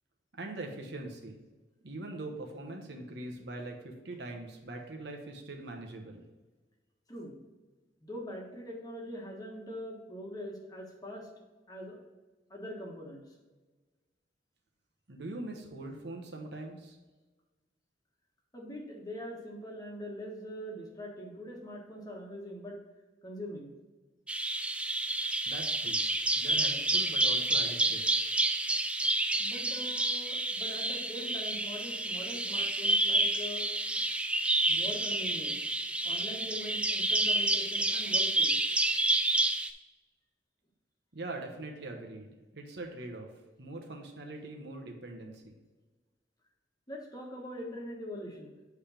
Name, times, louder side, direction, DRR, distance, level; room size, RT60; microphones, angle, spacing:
voice 1, 0.3-1.4 1.8-6.2 15.1-17.0 25.5-26.0 26.4-28.0 41.1-43.3 43.6-45.5, right 2 dB, 65° right, 2 dB, 1.1 m, -42 dB
voice 2, 8.0-11.3 11.7-12.0 12.5-13.3 18.5-22.8 23.2-23.7 29.4-34.0 34.7-35.6 36.0-38.6 46.9-48.5, equal, 20° left, -1 dB, 1.3 m, -43 dB
Bird vocalization bird call bird song, 24.3-39.7, right 2 dB, 5° right, 0.3 m, -29 dB
8.1 x 3.4 x 5.7 m, 1.2 s
head